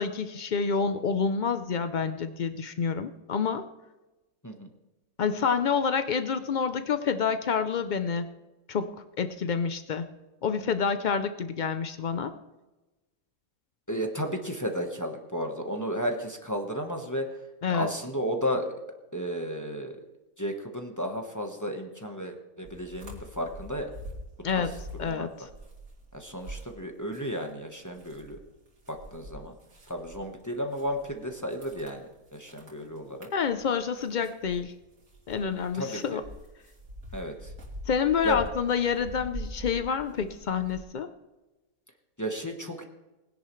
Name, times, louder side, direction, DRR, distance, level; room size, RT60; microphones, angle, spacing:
voice 1, 0.0-3.7 5.2-8.3 8.7-8.9 9.2-10.1 10.4-12.3 17.6-17.9 24.4-24.7 25.0-25.5 33.3-34.7 35.3-36.2 37.9-41.1, left 6 dB, 75° left, 10 dB, 0.4 m, -28 dB
voice 2, 13.9-17.3 17.7-18.7 19.1-20.0 20.4-23.9 24.5-24.6 25.1-25.3 26.1-28.4 28.9-29.5 29.9-33.3 35.7-36.2 37.1-37.5 38.2-38.4 42.2-42.8, equal, 15° left, 2 dB, 1.0 m, -33 dB
sound 1, 22.6-27.5 27.8-40.8, equal, 80° right, 3.2 m, -44 dB
20.5 x 10.5 x 3.2 m, 1.1 s
omnidirectional pair, 1.6 m